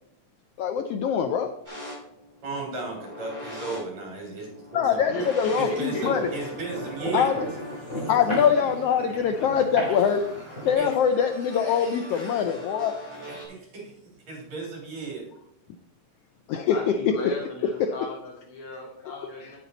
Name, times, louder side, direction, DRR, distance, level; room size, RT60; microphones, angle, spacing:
voice 1, 0.6-1.5 4.7-6.2 7.1-7.4 8.1-10.2 10.6-12.9 16.5-16.8, left 8 dB, 80° left, 6 dB, 1.4 m, -23 dB
sound 1, 1.6-13.4, equal, 5° right, 4.2 m, -42 dB
voice 2, 2.4-5.1 5.6-7.3 8.0-8.1 10.8-10.9 13.3-13.8 14.3-15.3, right 3 dB, 65° right, 0 dB, 4.2 m, -35 dB
voice 3, 5.0-6.1 8.0-8.1 9.3-9.4 15.3-15.4 16.7-19.6, left 2 dB, 55° left, -1 dB, 1.8 m, -35 dB
sound 2, 5.4-10.7, equal, 25° left, 4.9 m, -34 dB
9.2 x 8.5 x 3.9 m, 0.76 s
omnidirectional pair, 3.3 m